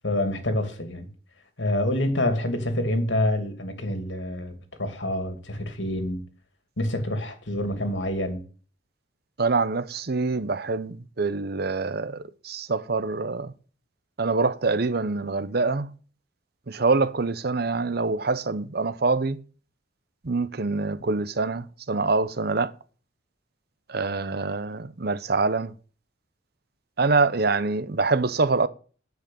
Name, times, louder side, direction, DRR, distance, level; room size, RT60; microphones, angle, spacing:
voice 1, 0.0-1.1 1.6-4.5 4.8-6.2 6.8-8.4, left 1 dB, 85° left, 2.6 m, -27 dB
voice 2, 9.4-13.5 14.2-15.9 16.7-19.4 20.2-22.7 23.9-25.7 27.0-28.7, right 3 dB, 60° right, 0.8 m, -25 dB
9.6 x 7.8 x 9.1 m
head